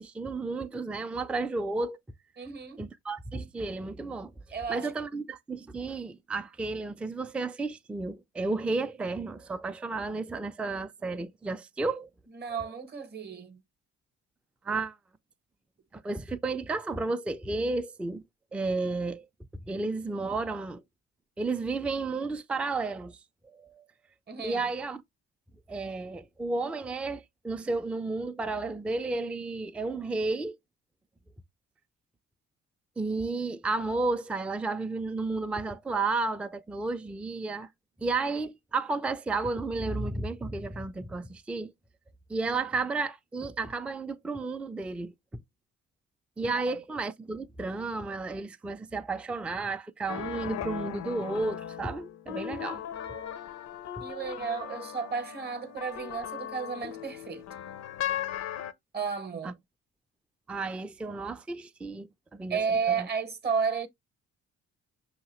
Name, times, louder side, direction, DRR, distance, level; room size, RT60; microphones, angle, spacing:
voice 1, 0.0-2.0 2.8-4.3 4.7-12.1 14.6-15.0 15.9-18.2 18.5-19.3 19.7-20.8 21.4-23.2 23.4-23.8 24.4-25.0 25.7-30.6 33.0-37.7 38.0-41.7 42.3-45.1 46.4-53.3 54.0-54.1 59.4-59.5 60.5-63.1, right 3 dB, 5° right, 0.3 m, -32 dB
voice 2, 2.4-2.8 4.5-4.9 12.3-13.6 24.3-24.7 46.5-46.7 54.0-57.5 58.9-59.6 62.5-63.9, right 6 dB, 35° right, 0.7 m, -32 dB
sound 1, 50.1-58.7, left 10 dB, 60° left, 0.5 m, -38 dB
5.5 x 2.8 x 3.0 m
cardioid pair, 90°, 30 cm